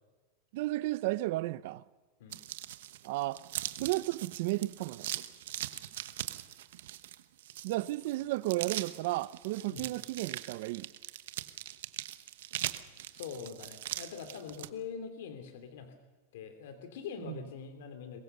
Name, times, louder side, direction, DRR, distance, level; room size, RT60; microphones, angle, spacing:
voice 1, 0.5-1.8 3.0-3.4 3.8-5.1 7.6-10.9 17.3-17.4, right 18 dB, 55° right, 0.6 m, -33 dB
sound 1, 2.3-14.7, right 13 dB, 75° right, 1.1 m, -41 dB
voice 2, 13.1-15.9 16.3-18.2, left 6 dB, 75° left, 2.8 m, -43 dB
23.0 x 21.0 x 6.7 m
supercardioid pair, 165°, 0 cm